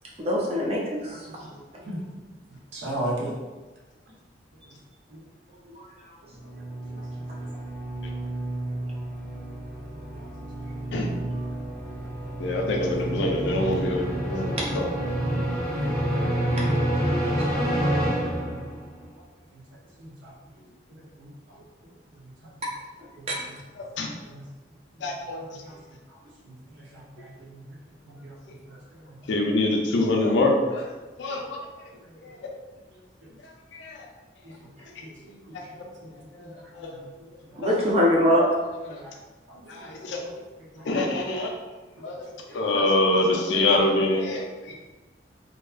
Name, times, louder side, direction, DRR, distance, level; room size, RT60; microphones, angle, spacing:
voice 1, 0.2-1.3 1.7-1.8 14.6-14.7 17.4-17.6 23.3-23.4 37.6-38.4, equal, 35° right, -3 dB, 0.4 m, -23 dB
voice 2, 1.4-2.0 2.7-3.3 15.7-15.8 20.0-20.3 21.1-21.3 23.2-23.3 24.2-24.4 25.6-25.7 26.4-26.5 26.9-27.6 28.2-28.3 28.7-28.8 31.3-31.4 34.4-34.5 35.0-35.4 36.0-36.1 36.4-36.5 36.8-37.0 38.9-39.1 39.5-39.9 40.7-40.8, right 1 dB, 90° right, -4 dB, 0.7 m, -36 dB
sound 1, 6.3-19.0, right 1 dB, 10° left, 0.7 m, -29 dB
voice 3, 12.4-14.8 23.8-24.1 25.0-25.4 29.3-30.9 31.2-31.5 32.2-32.5 33.7-34.1 35.5-35.8 36.3-37.0 37.6-37.9 38.9-39.0 39.7-40.3 40.8-41.5 42.0-44.7, left 2 dB, 80° left, 1 dB, 0.4 m, -25 dB
2.6 x 2.3 x 2.4 m, 1.2 s
head